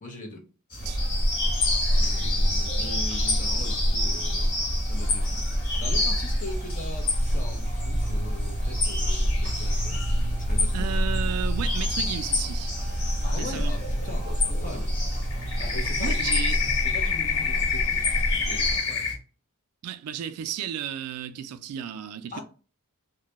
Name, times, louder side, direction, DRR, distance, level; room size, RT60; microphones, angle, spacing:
voice 1, 0.0-0.4 1.9-4.5 4.8-10.0 10.4-11.0 13.2-14.9 15.6-19.1 22.3-22.4, left 2 dB, 35° left, 0.6 m, -41 dB
sound 1, 0.7-19.1, left 3 dB, 65° left, 1.3 m, -29 dB
sound 2, 0.8-18.8, equal, 30° right, 0.6 m, -27 dB
voice 2, 10.7-12.7 13.3-13.7 16.0-16.6 19.8-22.4, right 9 dB, 85° right, 0.3 m, -33 dB
2.2 x 2.1 x 2.8 m
head